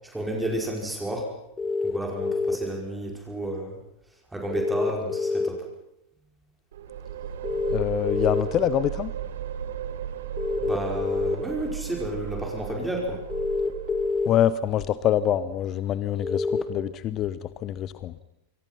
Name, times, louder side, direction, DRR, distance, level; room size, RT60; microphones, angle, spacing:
voice 1, 0.1-1.3 1.8-3.8 4.3-5.6 10.6-13.2, right 1 dB, 5° right, 0 dB, 5.0 m, -31 dB
sound 1, 1.6-2.6 4.5-5.5 7.4-8.4 10.4-11.3 13.3-14.3 16.2-16.6, left 4 dB, 15° left, 2.5 m, -26 dB
sound 2, 6.7-14.6, right 9 dB, 60° right, 2.1 m, -35 dB
voice 2, 7.7-9.1 14.3-18.1, left 11 dB, 35° left, 16 dB, 0.9 m, -25 dB
28.5 x 24.5 x 5.8 m, 0.83 s
figure-of-eight pair, 90°, 0 cm